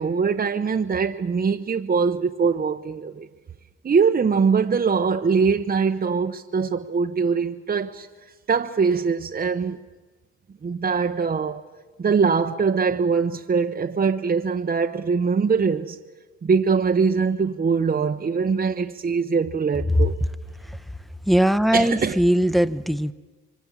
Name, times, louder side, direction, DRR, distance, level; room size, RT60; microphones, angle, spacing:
voice 1, 0.0-3.3 3.8-8.1 8.5-9.8 10.6-11.7 12.0-16.0 16.4-20.1 21.7-22.2, right 5 dB, 30° right, 0.9 m, -22 dB
voice 2, 21.2-23.1, equal, ahead, 0.9 m, -20 dB
26.5 x 24.0 x 7.4 m
cardioid pair, 90°, 30 cm